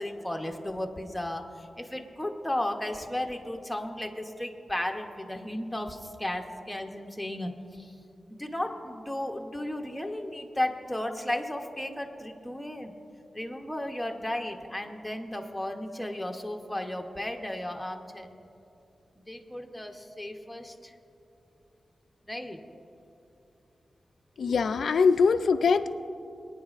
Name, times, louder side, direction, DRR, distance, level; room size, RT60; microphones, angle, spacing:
voice 1, 0.0-7.9 8.3-12.9 13.3-18.3 19.2-20.9 22.3-22.6, left 1 dB, 5° left, 3 dB, 0.8 m, -34 dB
voice 2, 24.4-26.0, left 5 dB, 85° left, 9 dB, 0.3 m, -23 dB
22.5 x 9.5 x 2.4 m, 2.8 s
wide cardioid pair, 145°, 0 cm